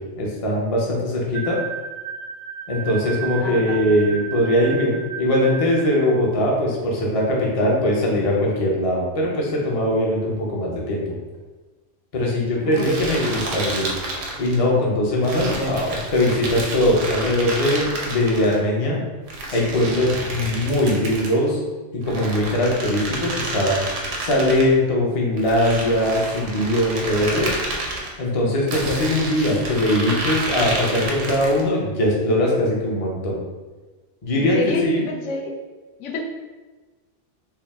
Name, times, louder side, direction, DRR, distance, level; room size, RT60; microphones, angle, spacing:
voice 1, 0.0-1.6 2.7-11.2 12.1-13.9 14.4-19.0 19.5-21.6 22.0-23.8 24.2-27.5 28.2-33.4 34.2-34.6 34.8-35.0, left 1 dB, 35° left, -2 dB, 0.6 m, -21 dB
sound 1, 1.3-6.2, right 7 dB, 60° right, 0.6 m, -33 dB
voice 2, 3.4-4.0 12.6-12.9 13.2-13.4 34.4-35.5 36.0-36.2, left 1 dB, 80° left, 1 dB, 0.9 m, -28 dB
sound 2, 12.7-14.6 15.2-18.6 19.3-21.4 22.0-24.7 25.4-28.1 28.7-31.7, right 2 dB, 85° right, 1.1 m, -29 dB
4.5 x 2.0 x 3.5 m, 1.2 s
omnidirectional pair, 1.3 m